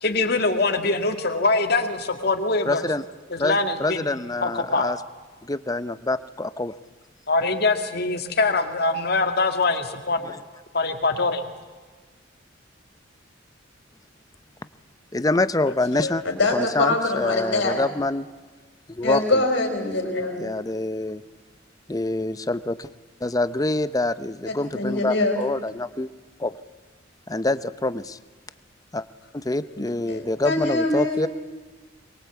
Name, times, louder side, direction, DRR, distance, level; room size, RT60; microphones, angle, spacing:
voice 1, 0.0-2.9 3.3-4.1 4.4-4.9 7.3-10.4 10.7-11.5, left 3 dB, 55° left, 6 dB, 2.2 m, -23 dB
voice 2, 2.7-3.0 3.4-5.0 5.5-6.7 10.3-10.4 15.1-16.2 16.5-18.3 18.9-19.4 20.4-21.2 21.9-22.9 23.2-26.1 26.4-26.5 27.3-28.2 28.9-29.0 29.3-31.3, left 2 dB, 20° left, 14 dB, 0.7 m, -26 dB
voice 3, 16.0-17.8 19.0-20.4 24.5-25.4 29.8-31.3, left 2 dB, 70° left, 4 dB, 4.6 m, -24 dB
23.0 x 22.5 x 8.3 m, 1.4 s
head